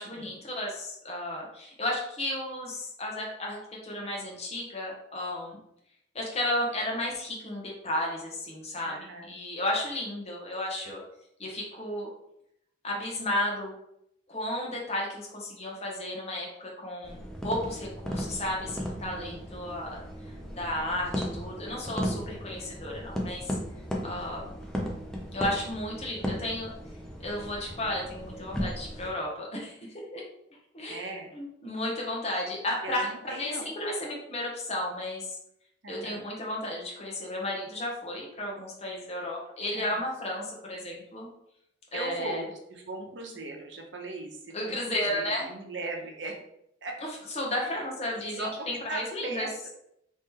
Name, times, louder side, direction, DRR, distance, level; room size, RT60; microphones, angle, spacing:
voice 1, 0.0-5.6 6.1-9.0 9.2-11.0 11.4-12.1 12.8-13.7 14.3-20.0 20.5-23.6 24.0-24.5 25.3-26.7 27.2-29.8 30.1-30.2 30.7-31.0 31.3-33.5 33.8-35.4 35.9-41.3 41.9-42.4 44.5-45.5 47.4-49.5, left 1 dB, 35° left, -2 dB, 1.0 m, -33 dB
voice 2, 8.8-9.4 18.9-19.6 23.9-24.5 30.9-31.3 32.8-33.7 35.8-36.3 39.7-40.0 41.9-46.4 46.8-47.0 47.6-49.7, right 2 dB, 80° right, 2 dB, 0.7 m, -39 dB
sound 1, 17.0-29.1, equal, 5° left, 0.5 m, -36 dB
3.1 x 2.9 x 3.6 m, 0.76 s
head